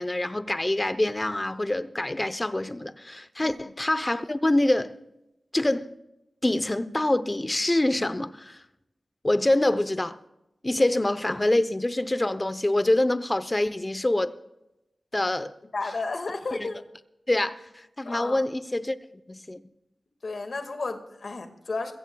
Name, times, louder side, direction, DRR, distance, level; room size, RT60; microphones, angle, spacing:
voice 1, 0.0-4.9 5.5-5.9 6.4-8.6 9.2-10.2 10.6-14.3 15.1-15.5 16.5-16.7 17.3-19.0 19.3-19.6, left 1 dB, 25° left, 0.8 m, -25 dB
voice 2, 3.4-3.7 15.7-16.8 18.0-18.4 20.2-21.9, left 3 dB, 65° left, 1.9 m, -33 dB
22.0 x 16.0 x 2.3 m
cardioid pair, 55°, 0 cm